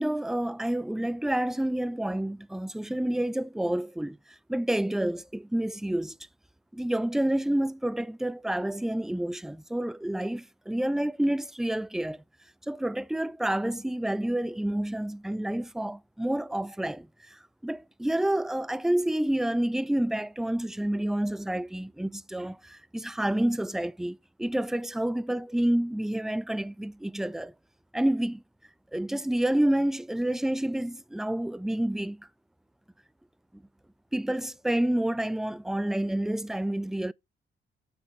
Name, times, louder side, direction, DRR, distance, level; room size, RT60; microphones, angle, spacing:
voice 1, 0.0-6.2 6.7-12.2 12.7-27.5 27.9-28.4 28.9-32.3 33.5-33.6 34.1-37.1, right 1 dB, ahead, 0.4 m, -29 dB
8.8 x 4.3 x 5.6 m
cardioid pair, 90°, 20 cm